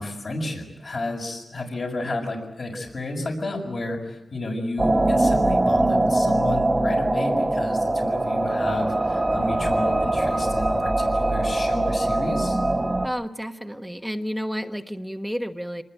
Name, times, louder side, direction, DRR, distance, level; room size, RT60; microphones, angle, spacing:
voice 1, 0.0-12.6, left 2 dB, 55° left, 0 dB, 6.5 m, -31 dB
sound 1, 4.8-13.1, right 2 dB, 20° right, 1.5 m, -22 dB
voice 2, 13.0-15.8, equal, ahead, 7 dB, 1.2 m, -31 dB
26.0 x 20.5 x 9.1 m, 0.91 s
wide cardioid pair, 100°, 0 cm